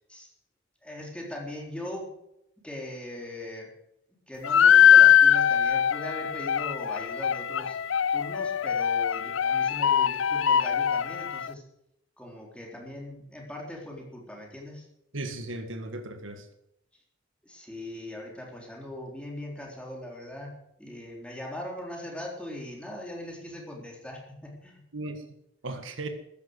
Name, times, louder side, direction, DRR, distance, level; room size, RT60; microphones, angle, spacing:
voice 1, 0.8-2.1 2.6-3.7 4.3-7.8 8.1-11.6 12.2-14.9 17.4-20.5 20.8-24.8, left 1 dB, 5° left, -1 dB, 3.7 m, -40 dB
sound 1, 4.4-11.5, left 9 dB, 75° left, 0.5 m, -21 dB
voice 2, 15.1-16.4 24.9-25.2 25.6-26.1, right 2 dB, 75° right, 7 dB, 1.7 m, -36 dB
14.0 x 10.5 x 8.0 m, 0.81 s
head